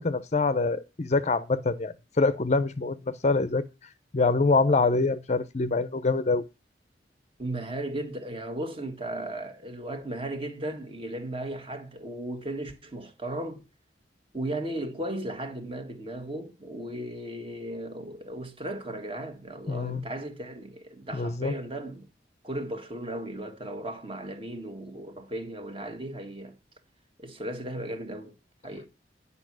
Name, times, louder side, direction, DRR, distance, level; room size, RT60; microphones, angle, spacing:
voice 1, 0.0-3.6 4.1-6.4 19.7-20.0 21.1-21.5, left 3 dB, 40° left, 0.6 m, -25 dB
voice 2, 7.4-13.6 14.3-22.1 22.4-26.5 27.2-28.3 28.6-28.9, right 1 dB, 30° right, 1.6 m, -36 dB
10.0 x 5.6 x 6.1 m
head